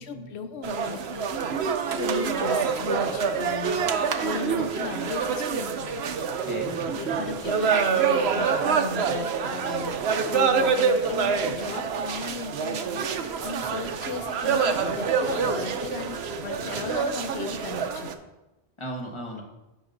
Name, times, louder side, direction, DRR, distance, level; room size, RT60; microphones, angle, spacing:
voice 1, 0.0-1.3 2.0-3.8 4.2-6.0 6.9-10.0 10.3-18.1, left 5 dB, 85° left, 8 dB, 1.0 m, -36 dB
sound 1, 0.6-18.1, right 6 dB, 80° right, 0.9 m, -26 dB
voice 2, 6.4-7.2 18.8-19.4, equal, 30° left, 0 dB, 1.3 m, -36 dB
15.0 x 5.1 x 2.6 m, 1.0 s
omnidirectional pair, 1.1 m